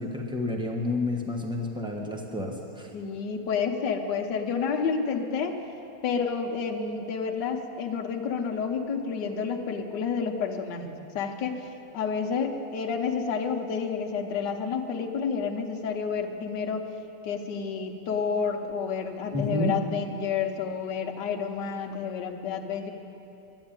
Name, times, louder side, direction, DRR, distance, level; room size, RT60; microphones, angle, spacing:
voice 1, 0.0-2.9 19.3-19.8, left 2 dB, 5° right, 0 dB, 0.7 m, -30 dB
voice 2, 2.9-5.5 6.0-11.7 11.9-16.8 17.2-22.9, left 6 dB, 60° left, 3 dB, 1.5 m, -30 dB
11.5 x 10.5 x 8.9 m, 2.8 s
omnidirectional pair, 2.4 m